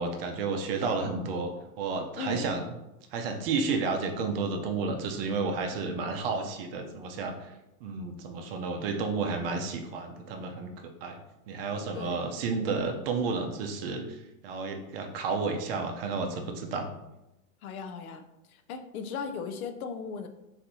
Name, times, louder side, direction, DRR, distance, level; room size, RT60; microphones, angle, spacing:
voice 1, 0.0-2.6 3.1-7.5 7.8-10.7 11.0-11.2 11.5-16.9, right 4 dB, 40° right, 4 dB, 0.6 m, -31 dB
voice 2, 2.2-2.5 11.9-12.2 17.6-20.3, left 5 dB, 70° left, 8 dB, 0.7 m, -37 dB
4.4 x 4.0 x 2.6 m, 0.93 s
supercardioid pair, 150°, 45 cm